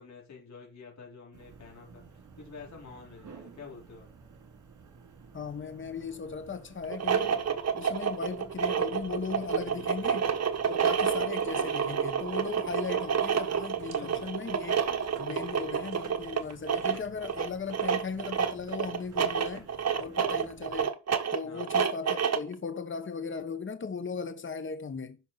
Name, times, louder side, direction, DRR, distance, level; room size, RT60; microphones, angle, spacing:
voice 1, 0.0-4.1 9.6-10.2 13.9-14.3 21.4-21.8, left 5 dB, 65° left, 3.8 m, -48 dB
sound 1, 1.3-20.9, right 5 dB, 75° right, 2.5 m, -52 dB
voice 2, 5.3-7.4 7.7-10.3 10.7-14.8 15.2-19.7 20.0-21.0 21.3-25.2, left 5 dB, 40° left, 1.2 m, -37 dB
sound 2, 6.8-22.5, right 7 dB, 55° right, 1.4 m, -29 dB
11.0 x 5.8 x 4.1 m
cardioid pair, 85°, 30 cm